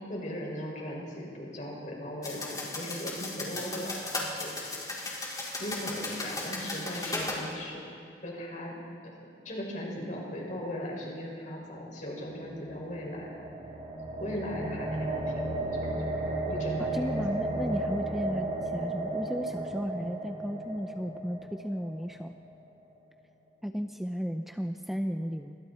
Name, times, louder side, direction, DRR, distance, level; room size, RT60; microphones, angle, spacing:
voice 1, 0.0-4.6 5.5-8.8 9.0-13.5 14.2-17.7, equal, 45° left, -2 dB, 6.1 m, -38 dB
sound 1, 2.2-7.4, left 2 dB, 20° left, 4.8 m, -36 dB
sound 2, 12.3-22.5, right 2 dB, 40° right, 3.5 m, -34 dB
voice 2, 16.8-22.3 23.6-25.6, equal, ahead, 5 dB, 0.6 m, -34 dB
29.0 x 25.0 x 4.4 m, 2.3 s
head